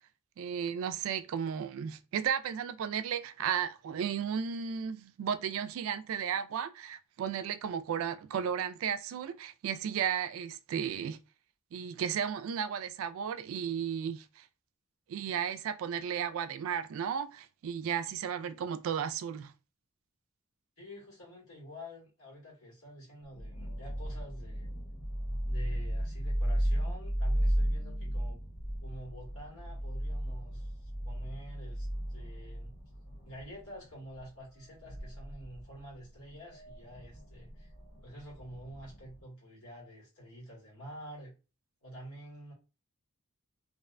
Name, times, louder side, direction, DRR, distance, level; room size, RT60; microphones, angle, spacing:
voice 1, 0.4-11.2 11.7-14.4 15.1-19.5, right 8 dB, 75° right, 0.3 m, -34 dB
voice 2, 20.8-24.8 25.5-28.4 28.8-32.8 33.2-37.7 38.0-41.3 41.8-42.5, equal, 85° left, 1.4 m, -49 dB
sound 1, 23.2-39.2, equal, 60° left, 1.0 m, -35 dB
2.6 x 2.1 x 2.4 m
head